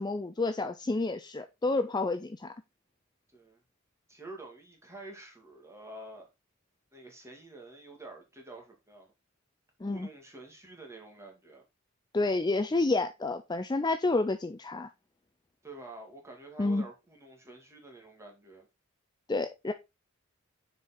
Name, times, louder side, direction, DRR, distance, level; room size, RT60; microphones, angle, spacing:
voice 1, 0.0-2.5 9.8-10.1 12.1-14.9 16.6-16.9 19.3-19.7, left 2 dB, 20° left, 0.4 m, -29 dB
voice 2, 4.1-6.3 6.9-9.1 9.8-11.6 15.6-18.7, right 2 dB, 15° right, 2.1 m, -48 dB
6.8 x 4.8 x 4.2 m
head